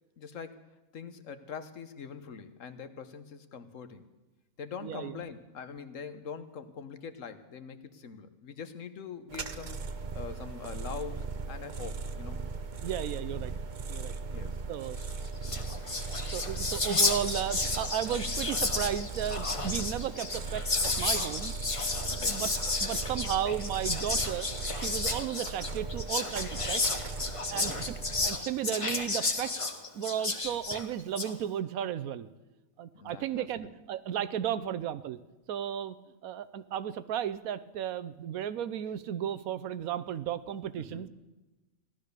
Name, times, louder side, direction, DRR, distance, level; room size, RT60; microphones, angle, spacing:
voice 1, 0.2-0.6 0.9-4.1 4.6-9.8 10.1-12.4 14.3-14.6 18.2-18.3 22.1-22.4 27.5-27.8 32.9-33.7 40.8-41.0, left 6 dB, 70° left, 10 dB, 1.3 m, -43 dB
voice 2, 4.8-5.2 12.8-13.5 13.9-14.1 14.7-15.0 15.6-15.7 16.3-21.5 22.0-22.5 22.8-24.5 24.8-27.0 27.5-27.7 28.2-29.6 29.9-32.3 32.8-35.2 35.5-36.0 36.2-41.1, right 10 dB, 90° right, 13 dB, 1.2 m, -34 dB
sound 1, 9.3-28.3, right 4 dB, 40° right, 0.8 m, -38 dB
Whispering, 15.1-15.2 15.4-31.3, left 3 dB, 25° left, 1.0 m, -32 dB
16.0 x 12.0 x 6.7 m, 1.1 s
omnidirectional pair, 1.4 m